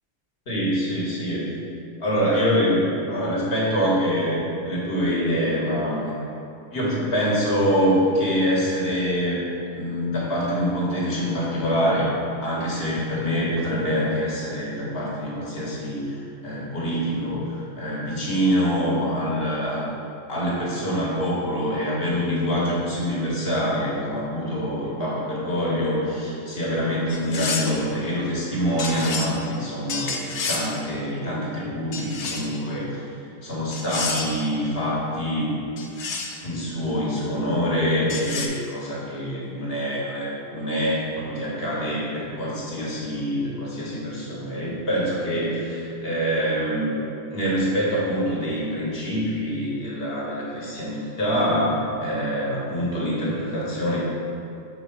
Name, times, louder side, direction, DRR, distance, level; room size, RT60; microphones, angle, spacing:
voice 1, 0.5-1.5 2.0-6.2 6.7-9.4 9.7-12.1 12.4-19.9 20.3-33.1 33.4-35.5 36.4-47.0 47.3-54.0, equal, 60° left, -6 dB, 1.7 m, -25 dB
sound 1, 27.1-27.8 28.8-29.3 29.9-30.7 31.9-32.6 33.7-34.4 35.8-36.4 38.1-38.5, left 4 dB, 80° left, 1.0 m, -29 dB
5.6 x 3.9 x 5.9 m, 2.7 s
omnidirectional pair, 1.1 m